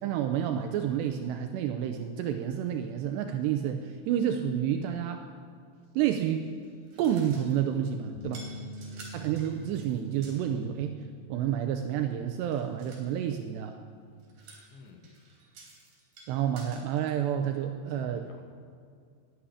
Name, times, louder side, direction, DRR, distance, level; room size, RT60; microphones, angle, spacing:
voice 1, 0.0-5.3 6.0-6.5 7.0-8.5 9.1-11.0 11.3-13.8 16.3-18.2, right 9 dB, 85° right, 6 dB, 2.5 m, -29 dB
sound 1, 6.4-7.7 8.2-10.5 12.5-13.1 14.2-17.1, right 3 dB, 50° right, 4.6 m, -52 dB
sound 2, 8.2-14.4, left 1 dB, 85° left, 3.5 m, -47 dB
voice 2, 8.5-9.1 14.7-15.1 17.9-18.4, left 3 dB, 70° left, 3 dB, 3.9 m, -51 dB
12.0 x 11.5 x 9.9 m, 2.3 s
omnidirectional pair, 5.6 m